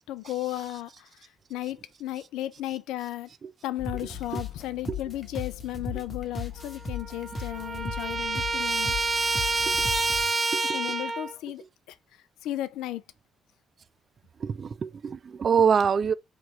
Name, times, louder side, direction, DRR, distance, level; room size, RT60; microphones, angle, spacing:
voice 1, 0.1-3.3 3.6-9.0 10.7-12.0 12.4-13.0, left 14 dB, 65° left, 0.3 m, -35 dB
sound 1, 3.8-10.3, left 4 dB, 35° left, 1.0 m, -37 dB
Trumpet, 6.6-6.7 6.9-11.4, right 3 dB, 20° right, 0.9 m, -28 dB
voice 2, 14.4-16.1, right 6 dB, 45° right, 0.3 m, -24 dB
3.2 x 3.0 x 4.1 m
figure-of-eight pair, 45°, 0 cm